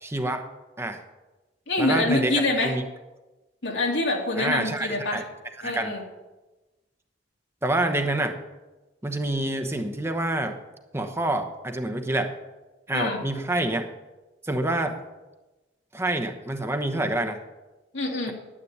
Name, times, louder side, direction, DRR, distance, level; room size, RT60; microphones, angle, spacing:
voice 1, 0.0-0.4 0.8-1.0 1.8-2.8 4.4-5.2 5.6-5.9 7.6-8.4 9.0-10.6 10.9-12.3 12.9-13.9 14.4-15.0 15.9-17.4, right 1 dB, 15° right, 6 dB, 1.0 m, -27 dB
voice 2, 1.7-2.8 3.6-5.2 5.6-6.0 12.9-13.2 17.9-18.3, left 2 dB, 80° left, 0 dB, 2.8 m, -25 dB
10.0 x 8.6 x 9.5 m, 1.1 s
head